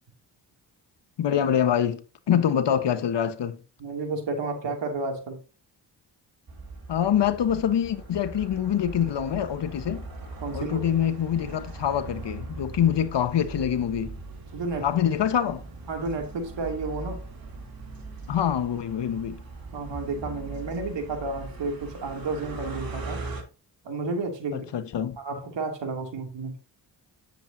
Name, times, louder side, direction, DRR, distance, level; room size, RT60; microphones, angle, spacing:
voice 1, 1.2-2.0 2.3-3.6 6.9-10.1 10.5-14.2 14.8-15.6 18.3-19.4 24.5-25.2, left 9 dB, 65° left, 1.3 m, -25 dB
voice 2, 3.8-5.4 10.4-10.9 14.5-14.9 15.9-17.2 19.7-23.2 23.8-24.6 25.2-26.6, right 3 dB, 70° right, 2.8 m, -31 dB
sound 1, 6.5-23.4, right 3 dB, 50° right, 3.1 m, -40 dB
10.5 x 7.7 x 2.8 m
supercardioid pair, 55°, 45 cm